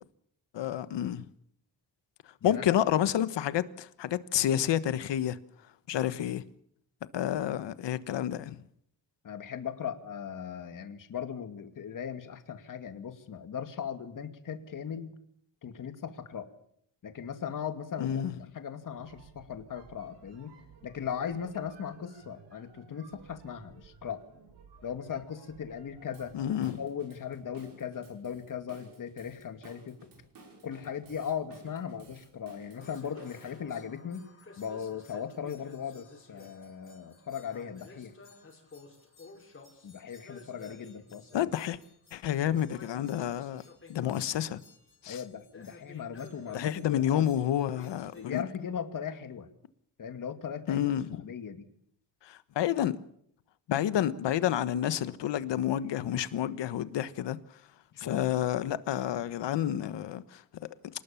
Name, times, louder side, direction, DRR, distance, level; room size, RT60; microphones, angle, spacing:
voice 1, 0.5-1.2 2.4-5.4 5.9-6.4 7.1-8.6 18.0-18.3 26.3-26.8 41.3-41.8 42.1-43.6 43.9-44.6 45.0-45.2 46.5-48.4 50.7-51.2 52.2-53.0 53.7-57.4 58.0-60.4, left 11 dB, 85° left, 1.3 m, -29 dB
voice 2, 2.4-2.8 9.2-15.2 15.6-16.5 17.0-20.6 20.8-24.2 24.8-26.4 26.8-30.0 30.6-34.3 34.6-38.1 39.8-41.5 45.1-47.3 48.2-49.5 50.0-50.8 51.2-51.7 57.9-58.3, left 8 dB, 50° left, 2.3 m, -38 dB
sound 1, 18.8-26.6, right 5 dB, 75° right, 5.7 m, -56 dB
Drum kit / Drum, 26.1-33.6, right 2 dB, 55° right, 6.1 m, -56 dB
sound 2, 32.7-48.4, left 3 dB, 30° left, 5.4 m, -54 dB
27.0 x 19.5 x 7.1 m
wide cardioid pair, 155°, 41 cm